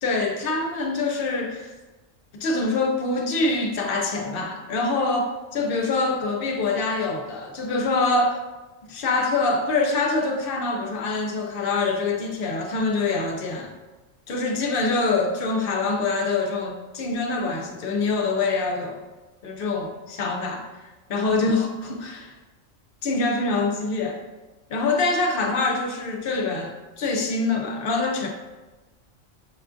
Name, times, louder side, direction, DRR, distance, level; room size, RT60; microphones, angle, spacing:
voice 1, 0.0-1.7 2.3-8.4 8.9-13.7 14.3-19.0 19.4-22.3 23.0-24.2 24.7-28.3, left 3 dB, 60° left, 2 dB, 0.6 m, -25 dB
5.9 x 2.4 x 2.4 m, 1.2 s
omnidirectional pair, 1.3 m